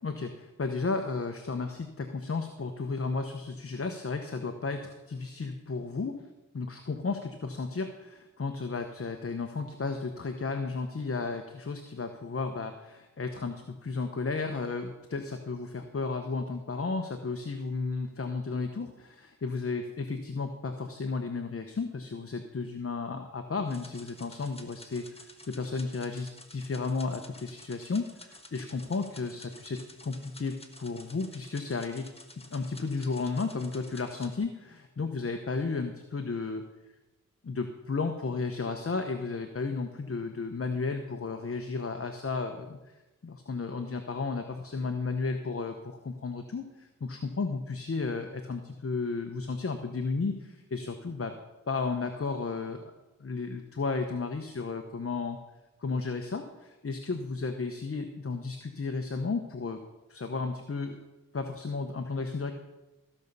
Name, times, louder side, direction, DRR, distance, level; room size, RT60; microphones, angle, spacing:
voice 1, 0.0-6.2 6.5-32.1 32.5-36.6 37.4-42.8 43.2-51.3 51.7-52.9 53.2-55.4 55.8-59.8 60.1-61.0 61.3-62.5, left 4 dB, 45° left, 6 dB, 1.0 m, -33 dB
sound 1, 23.7-34.4, left 1 dB, 20° left, 1.4 m, -52 dB
15.0 x 5.4 x 6.8 m, 1.0 s
cardioid pair, 50°, 33 cm